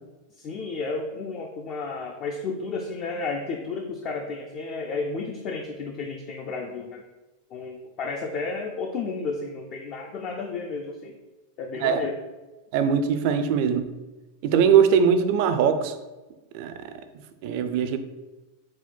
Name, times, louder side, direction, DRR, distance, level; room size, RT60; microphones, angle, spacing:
voice 1, 0.4-7.0 7.5-11.1 11.6-12.2, left 4 dB, 35° left, 0.3 m, -32 dB
voice 2, 12.7-13.9 14.4-16.0 16.5-16.7 17.4-18.0, right 7 dB, 50° right, 0.3 m, -21 dB
4.2 x 2.2 x 4.4 m
supercardioid pair, 155°, 0 cm